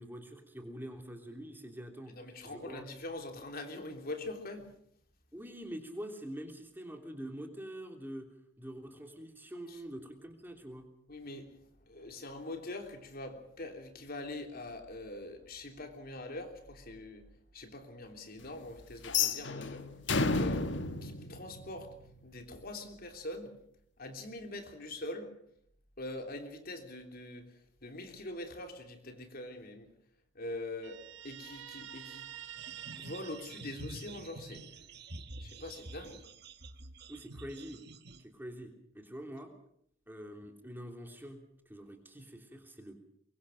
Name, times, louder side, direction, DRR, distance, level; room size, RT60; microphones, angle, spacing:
voice 1, 0.0-2.2 2.4-2.9 5.3-8.3 8.6-10.9 37.1-37.8 38.2-39.5 40.1-43.0, equal, 10° right, 4 dB, 3.2 m, -45 dB
voice 2, 2.1-4.7 9.7-9.8 11.1-11.5 11.9-17.2 17.5-19.9 20.3-20.7 21.0-21.9 22.2-23.6 24.0-25.3 26.0-29.9 30.3-32.3 32.9-34.8 35.4-36.2, left 2 dB, 50° left, 4 dB, 3.4 m, -43 dB
sound 1, 19.0-22.1, left 4 dB, 70° left, 1.5 m, -32 dB
Guitar, 30.8-34.4, right 10 dB, 85° right, 1.5 m, -48 dB
sound 2, 32.6-38.2, right 2 dB, 60° right, 1.7 m, -48 dB
23.5 x 23.5 x 6.5 m, 0.70 s
head